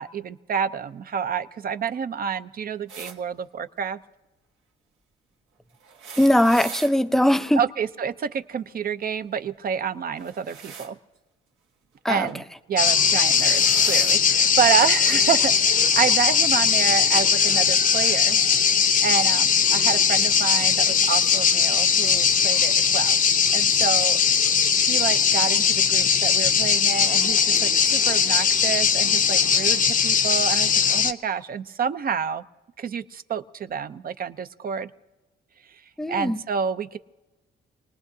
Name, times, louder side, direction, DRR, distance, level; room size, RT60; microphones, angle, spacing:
voice 1, 0.0-4.0 7.5-11.0 12.1-12.4 12.7-18.4 19.0-23.2 23.5-24.2 24.9-32.4 32.8-34.9 36.1-37.0, right 7 dB, 50° right, 11 dB, 0.6 m, -28 dB
sound 1, 2.9-3.2 5.8-6.9 10.1-10.9 12.3-12.5 13.1-14.2 15.2-15.3 16.5-16.6, right 6 dB, 85° right, 1.5 m, -40 dB
voice 2, 6.2-7.6 12.0-12.3 36.0-36.4, left 1 dB, ahead, 12 dB, 0.5 m, -20 dB
sound 2, 12.8-31.1, left 7 dB, 45° left, 0.7 m, -20 dB
27.0 x 19.5 x 2.7 m, 1.1 s
cardioid pair, 90°, 20 cm